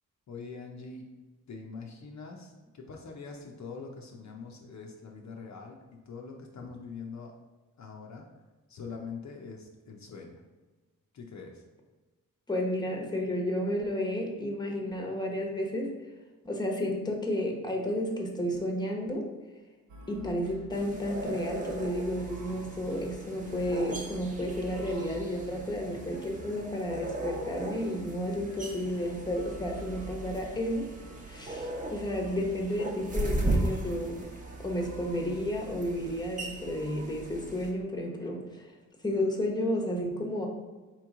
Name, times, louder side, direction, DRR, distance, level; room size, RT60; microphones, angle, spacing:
voice 1, 0.3-1.1 1.5-7.3 7.8-8.3 8.7-10.4 11.1-11.6, left 4 dB, 60° left, 0 dB, 0.7 m, -43 dB
voice 2, 12.5-16.0 16.4-19.3 20.1-30.9 31.2-34.3 34.6-38.7 39.0-40.5, left 1 dB, 15° left, 1 dB, 0.9 m, -32 dB
sound 1, 19.9-36.2, right 2 dB, 60° right, 0.7 m, -49 dB
sound 2, 20.7-37.7, right 1 dB, 25° right, 0.9 m, -37 dB
4.4 x 3.0 x 3.6 m, 1.3 s
cardioid pair, 65°, 32 cm